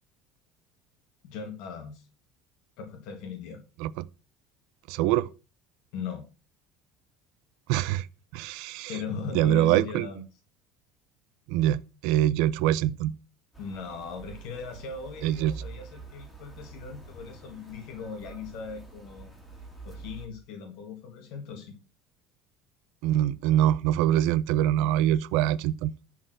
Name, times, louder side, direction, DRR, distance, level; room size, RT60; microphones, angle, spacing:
voice 1, 1.2-2.1 2.8-3.6 5.9-6.2 8.8-10.2 13.6-19.3 19.8-21.8, left 5 dB, 60° left, 1.9 m, -38 dB
voice 2, 4.9-5.3 7.7-8.1 8.3-8.9 9.3-10.1 11.5-13.1 15.2-15.5 23.0-25.9, right 13 dB, 65° right, 0.5 m, -24 dB
sound 1, 13.5-20.3, right 4 dB, 5° left, 2.5 m, -46 dB
11.0 x 4.5 x 6.3 m
cardioid pair, 175°, 0 cm